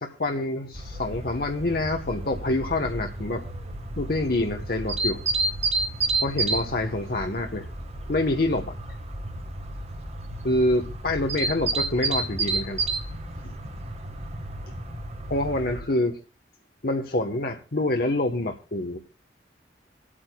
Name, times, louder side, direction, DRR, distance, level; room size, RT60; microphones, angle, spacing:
voice 1, 0.0-3.4 4.0-5.2 6.2-7.7 8.1-8.8 10.4-12.8 13.4-13.5 15.3-16.2 16.8-19.0, left 2 dB, 55° left, 3 dB, 1.1 m, -26 dB
sound 1, 0.7-15.8, right 3 dB, 35° right, 1.4 m, -31 dB
26.0 x 8.7 x 2.2 m, 0.35 s
head